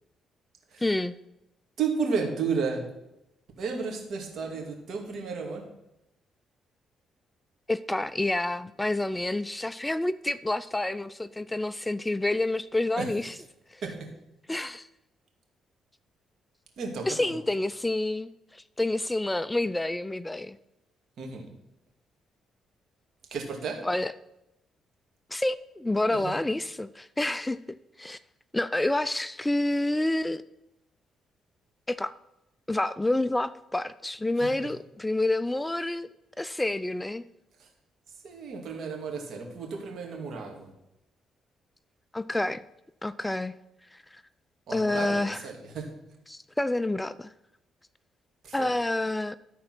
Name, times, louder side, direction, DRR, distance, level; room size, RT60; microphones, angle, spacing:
voice 1, 0.8-1.1 7.7-13.3 13.7-13.8 14.5-14.9 17.1-20.6 23.8-24.1 25.3-28.2 28.5-30.4 31.9-32.1 32.7-36.1 36.4-37.2 42.1-42.6 43.0-43.6 43.9-44.2 44.7-45.4 46.3-47.3 48.5-49.3, left 2 dB, 10° left, 0.3 m, -28 dB
voice 2, 1.8-2.9 3.6-5.6 13.0-13.1 13.8-14.1 16.8-17.4 21.2-21.5 23.3-23.8 26.0-26.3 34.4-34.7 37.6-37.7 38.2-40.7 44.7-45.9 48.4-48.7, right 5 dB, 65° right, 2.4 m, -33 dB
13.0 x 4.3 x 6.0 m
cardioid pair, 90°, 0 cm